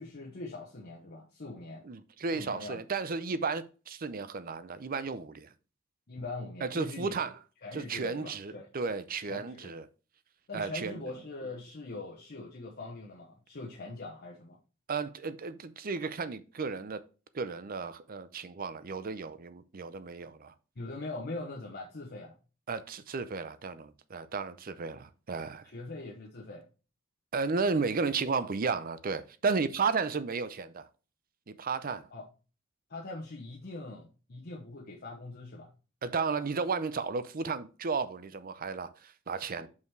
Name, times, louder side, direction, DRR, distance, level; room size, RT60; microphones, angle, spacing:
voice 1, 0.0-1.8 2.3-2.9 6.1-7.1 7.6-8.7 9.2-9.7 10.5-14.6 20.8-22.3 25.6-26.7 32.1-32.3 32.9-35.7 39.6-39.7, left 2 dB, 50° left, 1.0 m, -42 dB
voice 2, 1.8-5.5 6.6-7.3 7.7-9.9 10.5-11.0 14.9-17.0 17.3-20.5 22.7-25.7 27.3-30.9 31.5-32.1 36.0-39.7, right 4 dB, 45° right, 0.6 m, -33 dB
5.6 x 4.8 x 4.6 m
head